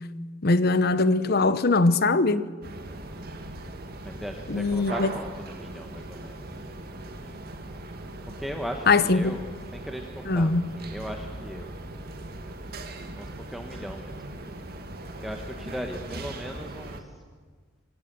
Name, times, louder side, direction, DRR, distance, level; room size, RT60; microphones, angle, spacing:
voice 1, 0.4-2.4 4.5-5.1 8.9-9.4 10.3-10.6, left 3 dB, 50° left, 0.8 m, -21 dB
sound 1, 2.6-17.0, right 2 dB, 50° right, 1.8 m, -39 dB
voice 2, 4.0-6.8 7.1-7.4 8.2-11.7 13.2-14.2 15.2-17.2, equal, ahead, 1.1 m, -38 dB
25.0 x 16.0 x 6.8 m
head